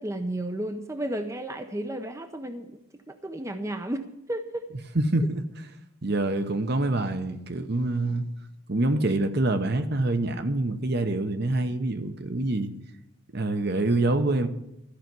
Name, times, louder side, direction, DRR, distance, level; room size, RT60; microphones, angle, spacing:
voice 1, 0.0-2.8 3.1-4.7, right 1 dB, 15° right, 0.6 m, -33 dB
voice 2, 4.9-5.4 6.0-8.2 8.7-12.7 13.3-14.5, right 2 dB, 50° right, 0.9 m, -26 dB
13.5 x 5.8 x 9.4 m
head